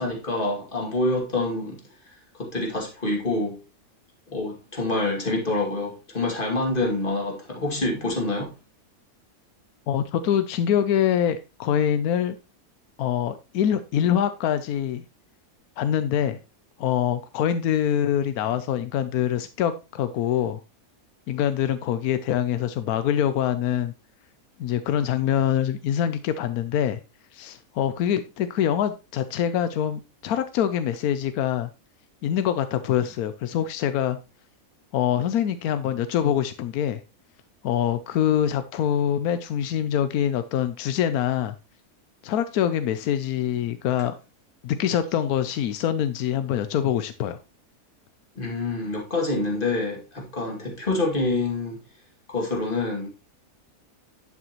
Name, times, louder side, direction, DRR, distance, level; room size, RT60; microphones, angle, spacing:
voice 1, 0.0-1.8 2.4-3.6 4.3-8.5 48.4-51.8 52.3-53.1, left 2 dB, 35° left, 2.5 m, -26 dB
voice 2, 9.9-12.4 13.0-15.0 15.8-16.4 16.8-20.6 21.3-23.9 24.6-27.0 27.3-31.7 32.2-34.2 34.9-37.0 37.6-41.5 42.2-44.1 44.6-47.4, left 10 dB, 85° left, 1.1 m, -24 dB
11.0 x 6.1 x 3.0 m
omnidirectional pair, 1.5 m